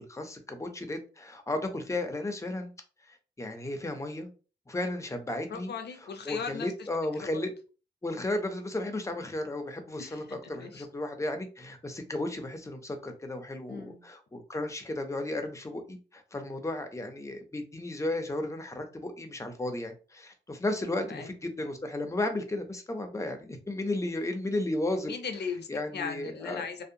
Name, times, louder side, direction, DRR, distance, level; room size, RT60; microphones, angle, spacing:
voice 1, 0.0-2.7 3.1-4.3 4.7-5.7 6.3-7.5 8.0-25.1 25.7-26.7, left 2 dB, 15° left, 5 dB, 0.5 m, -34 dB
voice 2, 5.5-6.9 7.2-7.5 10.0-10.9 13.7-14.0 21.0-21.3 25.0-26.8, left 5 dB, 60° left, 6 dB, 0.6 m, -38 dB
2.7 x 2.1 x 2.6 m, 0.35 s
wide cardioid pair, 120°, 19 cm